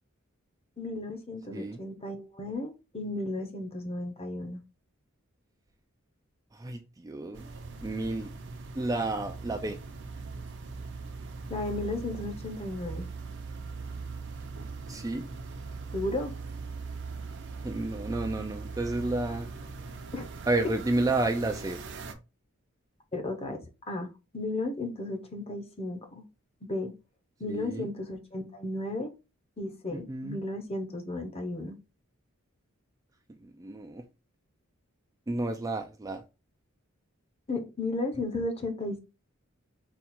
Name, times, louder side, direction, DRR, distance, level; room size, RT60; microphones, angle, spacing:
voice 1, 0.8-4.6 11.5-13.1 15.9-16.3 20.1-20.3 23.1-24.1 24.3-26.2 26.6-26.9 27.4-29.1 29.6-31.8 37.5-39.0, left 2 dB, 30° left, 0.8 m, -34 dB
voice 2, 6.5-7.5 7.8-8.3 8.8-9.8 14.9-15.3 17.6-19.5 20.5-21.8 27.5-27.9 29.9-30.4 33.3-34.0 35.3-36.2, right 2 dB, 15° right, 0.3 m, -31 dB
sound 1, 7.3-22.1, right 4 dB, 55° right, 0.7 m, -40 dB
4.2 x 2.3 x 4.2 m
head